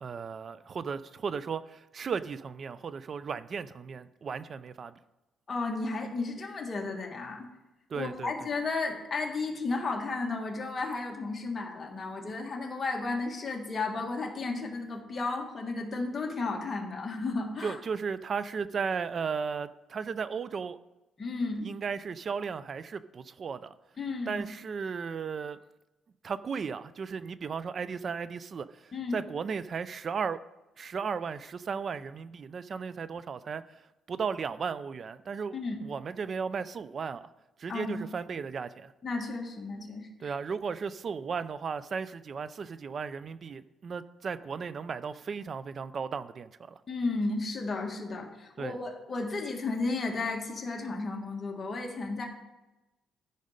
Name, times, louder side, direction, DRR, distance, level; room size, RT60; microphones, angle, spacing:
voice 1, 0.0-5.0 7.9-8.5 17.6-20.8 21.6-23.7 24.3-25.6 26.2-30.4 30.8-33.6 34.1-37.3 37.6-38.9 40.2-46.8 48.6-48.8, right 6 dB, 40° right, 0.4 m, -35 dB
voice 2, 5.5-7.5 7.9-17.8 21.2-21.7 24.0-24.4 28.9-29.2 35.5-35.8 37.7-37.9 39.0-40.3 46.9-52.3, left 3 dB, 30° left, 1.7 m, -33 dB
13.5 x 5.3 x 5.1 m
cardioid pair, 125°, 0 cm